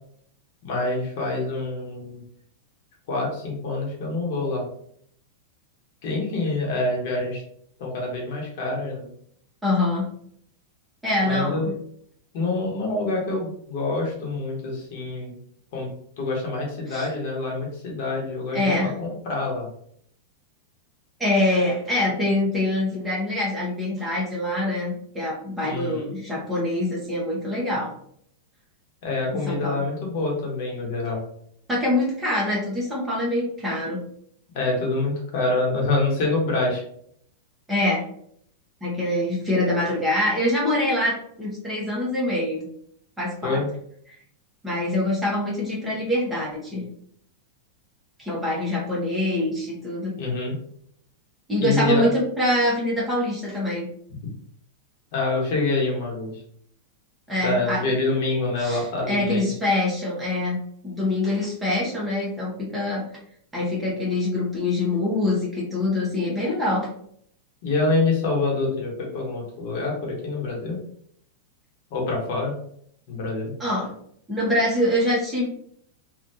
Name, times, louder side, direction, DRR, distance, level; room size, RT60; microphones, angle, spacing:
voice 1, 0.6-2.2 3.1-4.7 6.0-7.4 7.8-9.1 11.2-11.7 12.3-15.4 15.7-15.9 16.2-18.7 19.0-19.7 25.6-26.1 29.0-31.2 34.5-36.8 43.4-43.7 50.2-50.5 51.6-52.0 55.1-56.3 57.4-59.5 67.6-70.8 71.9-72.5 73.1-73.5, left 2 dB, 60° left, -1 dB, 1.1 m, -26 dB
voice 2, 9.6-10.1 11.0-11.7 16.9-17.1 18.5-18.9 21.2-27.9 29.5-29.8 31.7-34.0 37.7-38.0 38.8-42.6 43.2-43.6 44.1-44.2 44.6-46.8 48.2-50.1 51.5-53.9 57.3-57.8 58.6-60.6 60.8-63.0 63.5-66.9 73.6-73.9 74.3-75.5, left 1 dB, 5° right, -6 dB, 1.2 m, -24 dB
3.3 x 2.4 x 2.8 m, 0.66 s
supercardioid pair, 135°, 0 cm